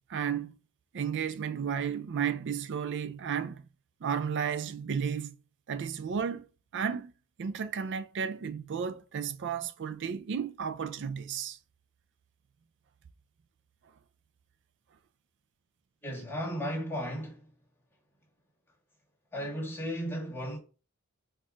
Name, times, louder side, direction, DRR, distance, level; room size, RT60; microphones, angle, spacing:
voice 1, 0.1-0.6 0.9-3.6 4.0-5.4 5.7-6.5 6.7-7.1 7.4-11.6, right 7 dB, 55° right, 0.4 m, -33 dB
voice 2, 16.0-17.5 19.3-20.6, equal, 10° left, 1.5 m, -35 dB
4.2 x 2.5 x 4.6 m
head